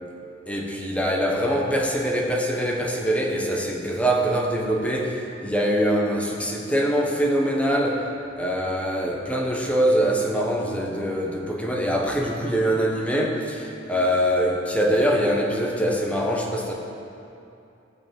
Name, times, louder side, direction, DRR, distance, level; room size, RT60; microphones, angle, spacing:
voice 1, 0.5-8.1 8.4-16.7, equal, 5° left, 0 dB, 1.3 m, -23 dB
16.0 x 6.0 x 7.6 m, 2.7 s
head